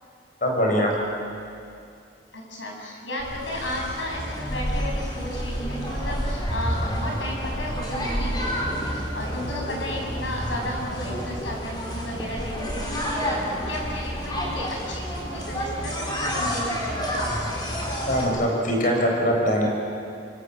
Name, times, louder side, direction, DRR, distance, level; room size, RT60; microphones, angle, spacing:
voice 1, 0.4-1.0 18.1-19.7, equal, 45° left, 0 dB, 6.7 m, -22 dB
voice 2, 2.3-17.0, left 1 dB, 75° left, -1 dB, 7.7 m, -34 dB
sound 1, 3.2-18.2, equal, 25° left, 4.8 m, -29 dB
27.0 x 24.0 x 7.8 m, 2.5 s
head